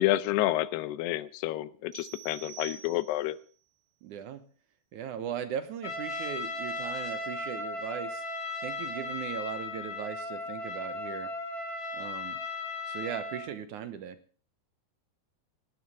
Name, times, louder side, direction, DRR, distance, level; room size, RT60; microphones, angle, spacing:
voice 1, 0.0-3.4, left 15 dB, 80° left, 16 dB, 2.8 m, -29 dB
sound 1, 1.9-3.4, right 9 dB, 20° right, 3.3 m, -47 dB
voice 2, 4.0-4.5 4.9-8.3 8.6-11.3 11.9-12.4 12.9-14.2, right 9 dB, 70° right, 10 dB, 2.0 m, -38 dB
Trumpet, 5.8-13.5, left 2 dB, 40° left, 3.8 m, -36 dB
18.5 x 16.0 x 3.6 m, 0.41 s
omnidirectional pair, 4.8 m